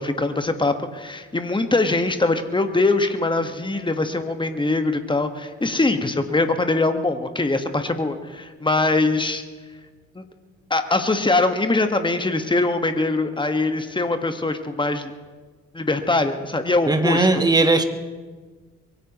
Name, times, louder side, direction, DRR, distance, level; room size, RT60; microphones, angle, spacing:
voice 1, 0.0-9.4 10.2-10.3 10.7-15.1 15.7-17.4, left 2 dB, 15° left, 8 dB, 1.6 m, -22 dB
voice 2, 16.9-17.8, right 2 dB, 10° right, 7 dB, 1.6 m, -18 dB
23.0 x 17.0 x 3.1 m, 1.4 s
figure-of-eight pair, 45°, 35 cm